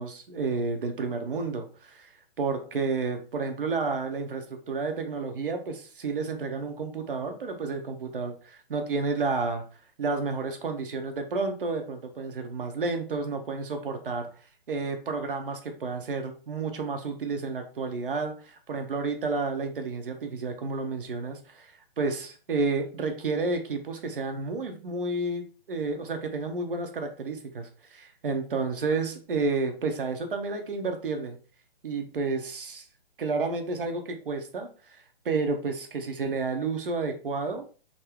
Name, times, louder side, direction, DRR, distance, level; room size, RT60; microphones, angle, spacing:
voice 1, 0.0-2.1 2.4-9.6 10.0-14.3 14.7-31.4 31.8-32.9 33.2-37.6, right 4 dB, 65° right, 5 dB, 0.7 m, -31 dB
3.6 x 2.1 x 3.5 m, 0.37 s
figure-of-eight pair, 135°, 30 cm